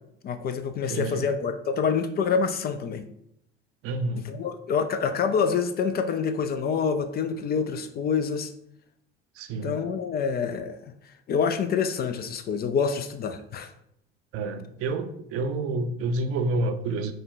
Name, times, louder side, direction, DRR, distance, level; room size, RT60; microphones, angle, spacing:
voice 1, 0.2-3.0 4.2-8.5 9.6-10.9 11.3-13.7, left 6 dB, 30° left, 8 dB, 0.4 m, -27 dB
voice 2, 0.9-1.3 3.8-4.3 9.4-9.8 14.3-17.1, right 2 dB, 50° right, 8 dB, 0.6 m, -29 dB
5.0 x 2.2 x 3.8 m, 0.74 s
hypercardioid pair, 65°, 30 cm